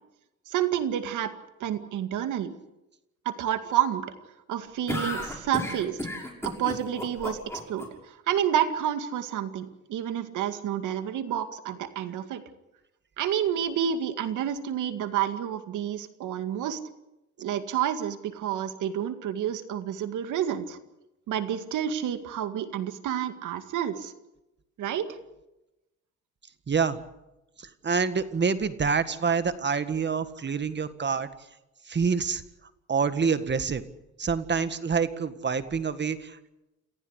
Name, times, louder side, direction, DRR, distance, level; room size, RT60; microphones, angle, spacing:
voice 1, 0.5-1.3 1.6-2.5 3.3-4.1 4.5-6.0 6.4-7.4 7.7-12.4 13.2-16.8 17.4-20.8 21.3-24.1 24.8-25.1, right 10 dB, 80° right, 9 dB, 2.2 m, -29 dB
sound 1, 4.9-7.9, left 1 dB, 10° left, 6.3 m, -33 dB
voice 2, 26.7-27.0 27.6-31.3 31.9-32.4 32.9-33.8 34.2-36.4, right 5 dB, 35° right, 12 dB, 1.8 m, -27 dB
28.5 x 15.0 x 8.2 m, 0.95 s
cardioid pair, 90°, 30 cm